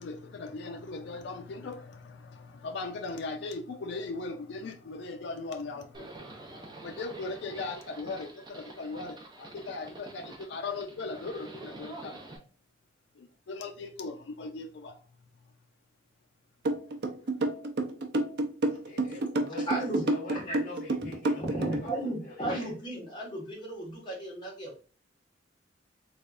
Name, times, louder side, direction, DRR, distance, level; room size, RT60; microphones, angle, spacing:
voice 1, 0.0-12.4 13.2-15.0, left 3 dB, 65° left, 0.4 m, -39 dB
Livestock farm animals working animals, 5.9-12.4, right 2 dB, 25° right, 0.7 m, -47 dB
sound 1, 16.6-21.9, right 2 dB, 60° right, 0.5 m, -28 dB
voice 2, 18.7-22.7, left 2 dB, 45° left, 1.4 m, -45 dB
voice 3, 19.5-20.0 20.3-20.6 21.0-21.1 21.4-24.8, right 1 dB, 25° left, 1.5 m, -35 dB
3.6 x 3.3 x 2.5 m
head